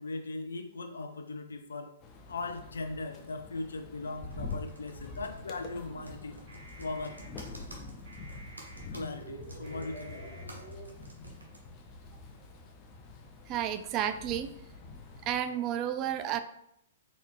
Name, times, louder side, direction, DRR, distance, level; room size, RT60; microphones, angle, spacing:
voice 1, 0.0-1.9 2.3-6.4 6.8-7.2 8.9-10.6, left 3 dB, 70° left, 7 dB, 0.5 m, -39 dB
sound 1, 2.0-15.4, left 3 dB, 25° left, 0.6 m, -46 dB
Computer keyboard, 4.3-11.6, right 2 dB, 85° right, 1.0 m, -51 dB
sound 2, 5.9-10.8, equal, 50° right, 1.8 m, -48 dB
voice 2, 13.5-14.5 15.2-16.4, right 10 dB, 30° right, 10 dB, 0.3 m, -31 dB
4.2 x 4.1 x 2.9 m, 0.77 s
figure-of-eight pair, 110°, 0 cm